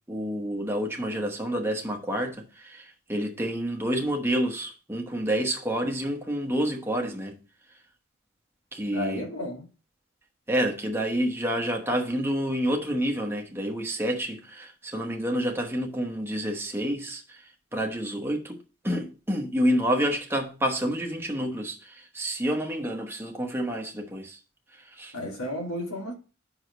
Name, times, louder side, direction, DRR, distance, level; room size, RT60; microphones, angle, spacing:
voice 1, 0.1-7.4 8.7-9.3 10.5-17.4 17.7-18.6 18.8-24.4 24.8-25.1, equal, 10° right, 1.0 m, -28 dB
voice 2, 8.9-9.7 25.1-26.1, left 1 dB, 85° left, 1.7 m, -32 dB
5.6 x 4.9 x 5.0 m
head